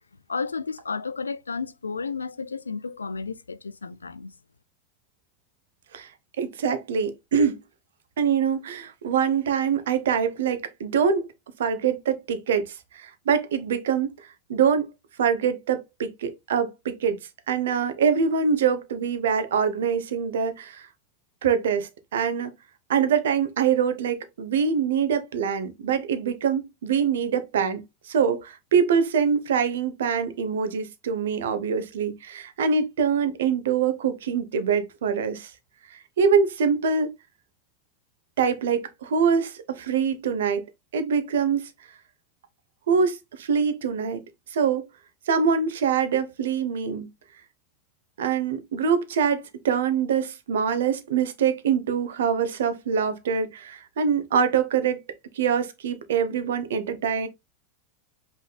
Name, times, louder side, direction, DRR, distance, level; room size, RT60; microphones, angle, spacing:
voice 1, 0.3-4.3, left 4 dB, 85° left, 0.3 m, -32 dB
voice 2, 6.4-7.6 8.2-11.3 11.6-14.9 15.2-17.2 17.5-20.9 21.4-22.5 22.9-35.5 35.9-37.1 38.4-40.6 40.9-41.7 42.9-44.2 44.5-44.9 45.3-47.1 48.2-55.0 55.3-57.3, right 6 dB, 70° right, 0.8 m, -24 dB
5.4 x 3.3 x 2.2 m
figure-of-eight pair, 90°, 0 cm